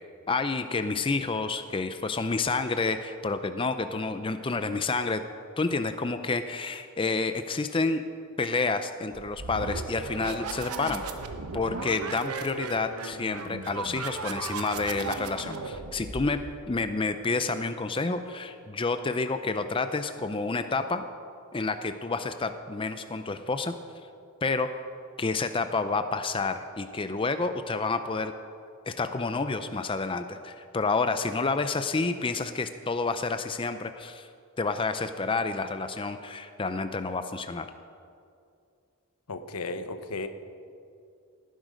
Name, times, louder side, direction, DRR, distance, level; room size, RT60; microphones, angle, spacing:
voice 1, 0.3-5.2 5.6-8.0 8.4-11.0 11.5-16.4 16.7-21.1 21.5-23.7 24.4-24.7 25.2-28.3 28.9-34.3 34.6-37.7, left 3 dB, 25° left, 9 dB, 0.5 m, -29 dB
sound 1, 9.1-16.8, right 4 dB, 85° right, 1.0 m, -36 dB
voice 2, 39.3-40.3, left 3 dB, 85° left, 9 dB, 0.9 m, -34 dB
17.5 x 10.0 x 5.2 m, 2.4 s
head